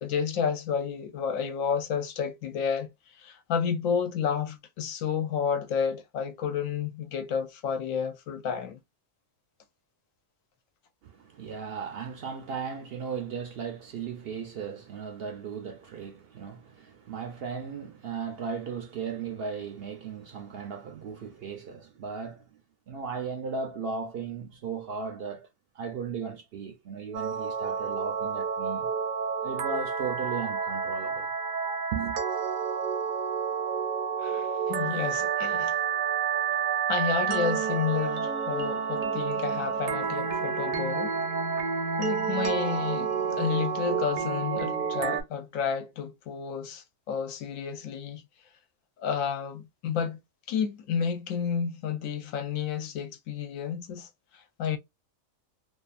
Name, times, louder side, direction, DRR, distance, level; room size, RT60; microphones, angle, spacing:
voice 1, 0.0-2.9 3.2-8.8 34.2-35.7 36.9-41.2 42.0-48.2 49.0-50.2 50.5-54.1 54.3-54.8, left 7 dB, 75° left, 1.0 m, -31 dB
voice 2, 11.0-22.6 22.9-25.5 25.7-28.9 29.4-31.3 31.9-32.2, right 6 dB, 60° right, 0.7 m, -36 dB
sound 1, 27.1-45.2, right 6 dB, 80° right, 1.1 m, -29 dB
2.7 x 2.4 x 2.3 m
omnidirectional pair, 1.4 m